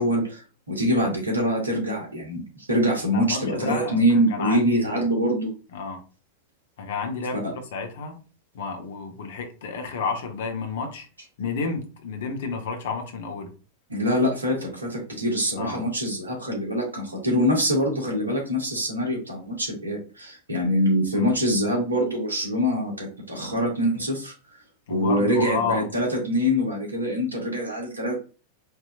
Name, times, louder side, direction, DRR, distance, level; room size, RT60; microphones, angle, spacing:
voice 1, 0.0-5.5 7.4-7.5 13.9-24.3 24.9-28.1, equal, 80° right, 0 dB, 1.6 m, -24 dB
voice 2, 3.1-5.0 5.7-6.0 6.8-8.2 8.5-11.1 11.4-13.5 15.6-15.9 21.1-21.3 24.9-25.9, left 4 dB, 55° left, 4 dB, 1.0 m, -31 dB
4.5 x 2.9 x 2.4 m, 0.35 s
figure-of-eight pair, 90°, 0 cm